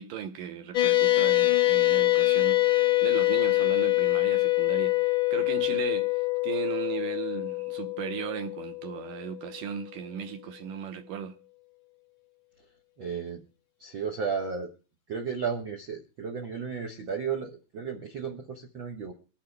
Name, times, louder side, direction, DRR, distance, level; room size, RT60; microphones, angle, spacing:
voice 1, 0.0-11.4, right 9 dB, 70° right, 2.4 m, -37 dB
sound 1, 0.7-9.4, left 19 dB, 85° left, 1.1 m, -25 dB
voice 2, 13.0-13.4 13.8-14.7 15.1-19.1, right 6 dB, 85° right, 1.0 m, -33 dB
24.0 x 8.7 x 3.3 m
omnidirectional pair, 4.3 m